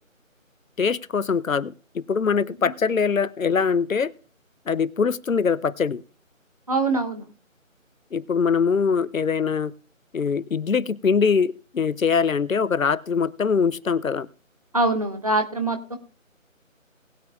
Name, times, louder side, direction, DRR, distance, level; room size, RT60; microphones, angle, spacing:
voice 1, 0.8-4.1 4.7-6.0 8.1-9.7 10.1-14.3, left 6 dB, 75° left, 20 dB, 0.7 m, -23 dB
voice 2, 6.7-7.2 14.7-16.0, right 2 dB, 25° right, 5 dB, 1.0 m, -23 dB
20.0 x 9.0 x 2.4 m, 0.39 s
figure-of-eight pair, 160°, 40 cm